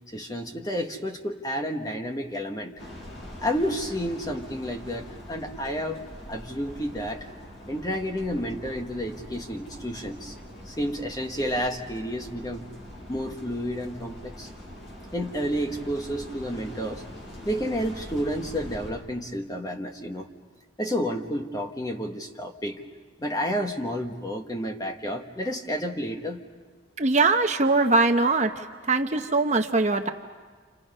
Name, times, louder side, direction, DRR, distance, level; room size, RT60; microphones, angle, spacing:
voice 1, 0.1-2.7 3.4-6.0 6.3-7.3 7.7-10.3 10.7-12.7 13.1-14.5 15.1-17.0 17.4-20.3 20.8-22.8 23.2-26.4, equal, 20° left, 2 dB, 1.4 m, -30 dB
sound 1, 2.8-18.9, equal, 70° left, 6.3 m, -43 dB
voice 2, 27.0-28.5 28.9-30.1, right 3 dB, 35° right, 6 dB, 0.9 m, -21 dB
29.5 x 28.0 x 5.5 m, 1.5 s
head